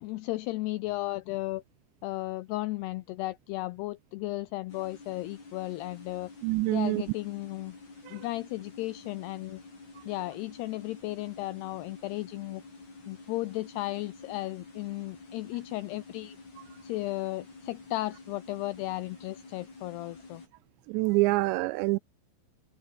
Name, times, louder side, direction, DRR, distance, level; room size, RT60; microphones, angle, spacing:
voice 1, 0.0-1.6 2.0-6.3 6.7-7.8 8.1-9.6 10.1-12.6 13.1-16.4 16.8-20.4, left 18 dB, 85° left, 2.3 m, -35 dB
sound 1, 4.7-20.5, left 3 dB, 40° left, 8.9 m, -49 dB
voice 2, 6.4-7.0 8.1-8.2 20.9-22.0, right 23 dB, 85° right, 2.6 m, -26 dB
omnidirectional pair, 5.4 m